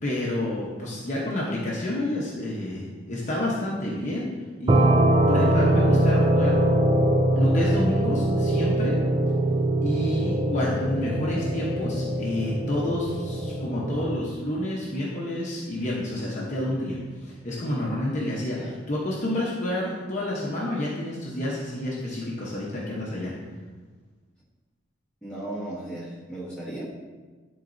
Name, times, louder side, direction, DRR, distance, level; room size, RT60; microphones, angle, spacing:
voice 1, 0.0-4.3 4.6-4.9 5.3-6.6 7.4-8.9 9.8-23.3, left 1 dB, 35° left, -5 dB, 0.9 m, -29 dB
sound 1, 4.7-14.2, right 1 dB, 25° right, 0.3 m, -23 dB
voice 2, 25.2-26.8, right 1 dB, 5° left, -10 dB, 1.7 m, -36 dB
11.0 x 4.0 x 2.6 m, 1.4 s
head